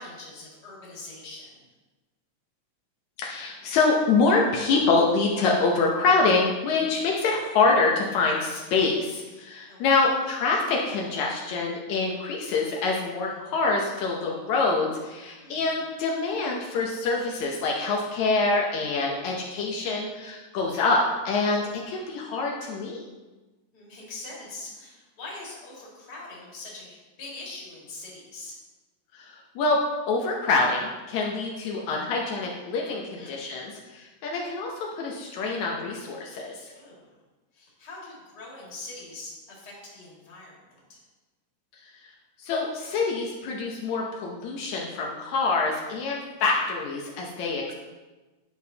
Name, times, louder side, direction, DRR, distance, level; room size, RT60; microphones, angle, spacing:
voice 1, 0.0-1.7 9.7-10.1 13.4-13.5 15.4-15.7 20.5-20.9 23.7-28.5 33.1-33.5 36.7-37.1 37.5-41.0, left 2 dB, 35° left, -5 dB, 2.3 m, -43 dB
voice 2, 3.2-23.0 29.1-29.8 30.1-36.7 42.4-47.7, left 3 dB, 80° left, -1 dB, 2.1 m, -25 dB
10.5 x 6.2 x 2.8 m, 1.2 s
omnidirectional pair, 3.3 m